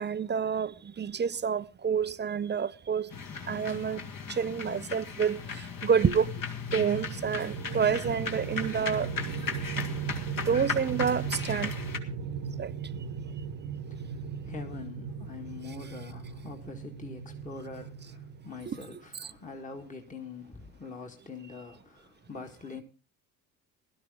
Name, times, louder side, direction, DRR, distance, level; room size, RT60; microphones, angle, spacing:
voice 1, 0.0-3.1 3.5-4.0 4.3-6.3 6.7-9.1 10.5-11.7 12.6-12.7 18.7-18.8 19.2-19.3, right 7 dB, 20° right, 0.6 m, -28 dB
sound 1, 3.1-12.0, left 5 dB, 45° left, 2.1 m, -37 dB
sound 2, 6.7-18.9, right 6 dB, 65° right, 1.3 m, -37 dB
voice 2, 13.8-22.8, left 4 dB, 15° left, 1.8 m, -44 dB
17.0 x 12.0 x 3.8 m
hypercardioid pair, 65°, 48 cm